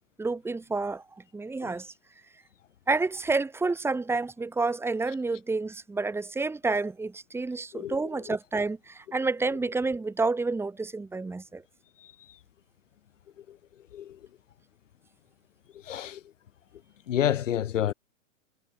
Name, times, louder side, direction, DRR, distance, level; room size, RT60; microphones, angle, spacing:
voice 1, 0.2-1.0 1.3-1.9 2.9-11.6, right 3 dB, 5° right, 3.6 m, -29 dB
voice 2, 7.7-8.4 12.0-12.1 13.4-13.6 13.9-14.2 15.8-16.2 17.1-17.9, left 10 dB, 70° left, 7.5 m, -30 dB
hypercardioid pair, 140°, 38 cm